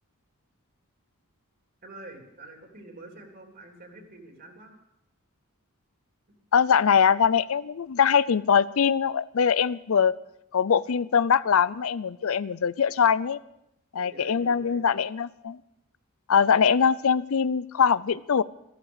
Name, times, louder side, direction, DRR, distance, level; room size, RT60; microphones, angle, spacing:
voice 1, 1.8-4.8 14.0-14.8, right 2 dB, 45° right, 2 dB, 3.5 m, -46 dB
voice 2, 6.5-10.1 10.5-13.4 13.9-15.6 16.3-18.4, left 7 dB, 70° left, 17 dB, 0.5 m, -22 dB
14.5 x 13.5 x 6.5 m, 0.81 s
head